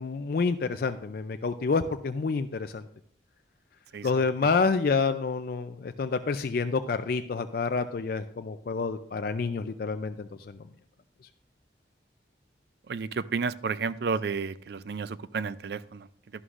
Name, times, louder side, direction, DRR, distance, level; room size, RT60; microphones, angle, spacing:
voice 1, 0.0-2.9 4.0-10.6, left 4 dB, 50° left, 8 dB, 0.4 m, -28 dB
voice 2, 12.9-16.1, right 5 dB, 55° right, 16 dB, 0.4 m, -31 dB
11.5 x 11.0 x 2.5 m, 0.62 s
head